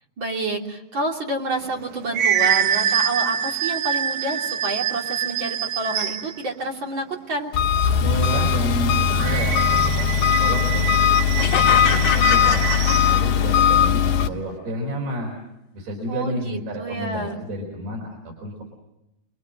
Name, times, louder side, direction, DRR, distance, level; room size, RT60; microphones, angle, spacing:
voice 1, 0.2-7.5 16.1-17.4, right 2 dB, 30° right, 0 dB, 3.3 m, -28 dB
sound 1, 1.6-6.4 9.1-13.1, right 9 dB, 65° right, 2.2 m, -25 dB
Engine, 7.5-14.3, left 8 dB, 80° left, 3.2 m, -19 dB
voice 2, 8.0-11.1 11.4-12.6 13.0-15.4 15.7-18.6, equal, 85° right, 0 dB, 6.6 m, -30 dB
sound 2, 11.4-13.7, left 9 dB, 65° left, 3.2 m, -26 dB
29.5 x 22.0 x 7.7 m, 0.91 s
omnidirectional pair, 4.4 m